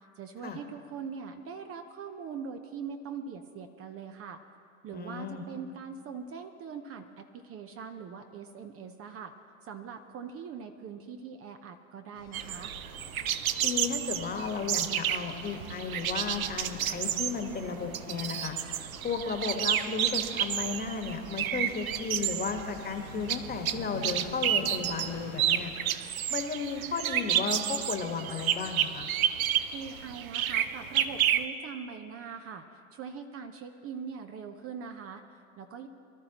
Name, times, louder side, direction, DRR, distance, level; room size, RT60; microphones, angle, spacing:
voice 1, 0.2-4.4 4.8-9.3 9.6-12.7 29.7-35.9, right 6 dB, 35° right, 6 dB, 0.9 m, -42 dB
voice 2, 4.9-5.4 13.6-18.6 19.0-25.7 26.3-29.1, left 5 dB, 20° left, 5 dB, 1.5 m, -34 dB
sound 1, 12.1-25.7, left 5 dB, 90° left, 2.1 m, -48 dB
sound 2, 12.3-31.4, right 10 dB, 80° right, 0.7 m, -30 dB
23.5 x 12.5 x 3.0 m, 2.3 s
hypercardioid pair, 90°, 41 cm